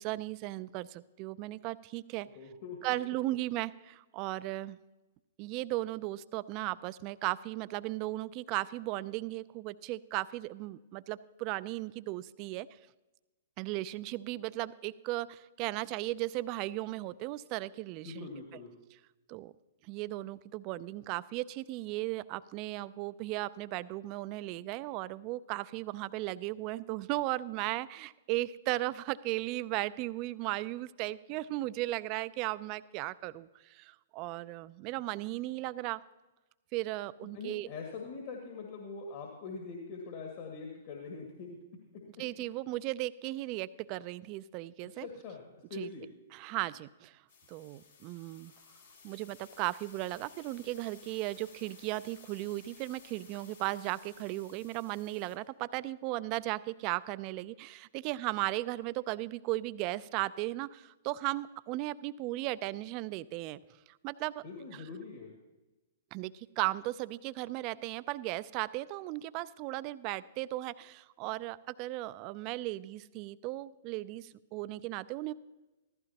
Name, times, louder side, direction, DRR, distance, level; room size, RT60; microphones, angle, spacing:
voice 1, 0.0-2.3 2.8-4.8 5.4-12.7 13.6-18.3 19.3-19.5 19.9-36.0 36.7-37.7 42.2-45.1 45.7-45.9 46.3-47.2 47.5-48.5 49.0-63.6 64.0-64.4 66.1-75.3, right 18 dB, 40° right, 17 dB, 0.4 m, -36 dB
voice 2, 2.3-2.8 18.0-18.7 37.3-41.6 44.9-46.0 64.4-65.3, left 4 dB, 50° left, 0 dB, 2.2 m, -43 dB
sound 1, 47.3-55.4, left 5 dB, 75° left, 2.3 m, -57 dB
15.0 x 14.5 x 2.9 m, 1.1 s
hypercardioid pair, 120°, 0 cm